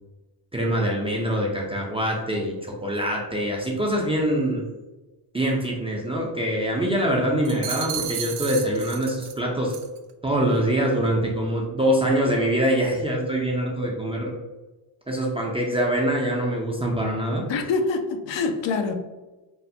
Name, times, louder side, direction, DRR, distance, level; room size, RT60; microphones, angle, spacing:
voice 1, 0.5-4.6 5.3-9.8 10.2-14.3 15.1-17.4, right 1 dB, 15° right, -2 dB, 0.3 m, -24 dB
sound 1, 7.4-9.4 9.7-10.0, right 9 dB, 70° right, 0.5 m, -32 dB
voice 2, 17.5-18.9, left 4 dB, 70° left, 6 dB, 0.5 m, -25 dB
3.1 x 2.1 x 2.6 m, 1.1 s
cardioid pair, 105°, 46 cm